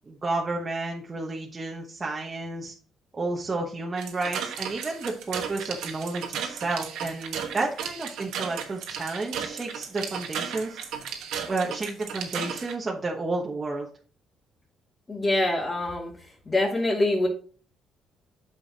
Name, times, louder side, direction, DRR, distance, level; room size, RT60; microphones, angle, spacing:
voice 1, 0.0-2.7 3.1-10.8 11.5-13.9, right 3 dB, 30° right, -1 dB, 1.1 m, -31 dB
sound 1, 4.0-12.7, right 7 dB, 80° right, 1.2 m, -35 dB
voice 2, 15.1-16.1 16.5-17.3, left 2 dB, 25° left, -6 dB, 2.4 m, -24 dB
8.8 x 6.3 x 2.9 m, 0.42 s
cardioid pair, 90°, 0 cm